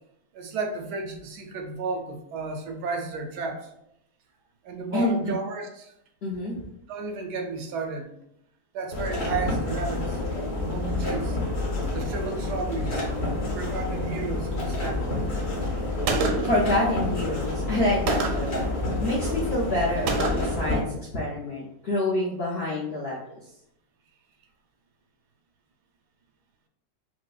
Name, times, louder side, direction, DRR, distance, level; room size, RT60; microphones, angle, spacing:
voice 1, 0.3-3.7 4.6-5.9 6.9-8.2 8.7-10.2 10.5-11.4 11.9-13.1 13.4-15.3, right 4 dB, 85° right, 4 dB, 1.2 m, -33 dB
voice 2, 4.9-5.3 6.2-6.7 16.4-18.6 19.0-23.2, left 1 dB, 70° left, -5 dB, 0.5 m, -27 dB
sound 1, 8.9-20.8, left 2 dB, 45° left, 1.1 m, -29 dB
Gunshot gunfire, 16.1-16.7 18.1-18.6 20.1-20.6, right 3 dB, 70° right, 0.8 m, -27 dB
4.8 x 2.1 x 2.3 m, 0.79 s
omnidirectional pair, 1.7 m